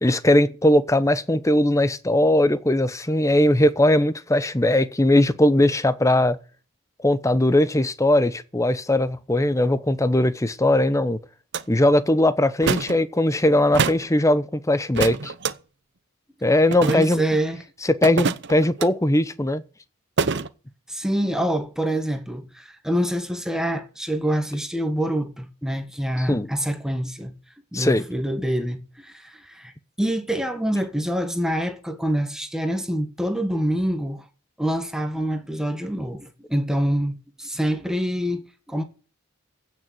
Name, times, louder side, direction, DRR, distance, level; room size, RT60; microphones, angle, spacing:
voice 1, 0.0-6.4 7.0-11.2 11.7-15.3 16.4-17.3 18.0-19.6 26.2-26.5 27.7-28.0, left 1 dB, 15° left, 0.8 m, -19 dB
sound 1, 11.5-11.6 12.6-13.0 13.7-14.1 15.0-15.5 16.7-17.2 18.0-18.9 20.2-20.5, right 5 dB, 55° right, 0.8 m, -25 dB
voice 2, 16.8-17.6 20.9-27.3 27.7-29.7 30.0-34.2 34.6-38.8, equal, 5° right, 1.6 m, -26 dB
16.0 x 6.5 x 7.7 m
head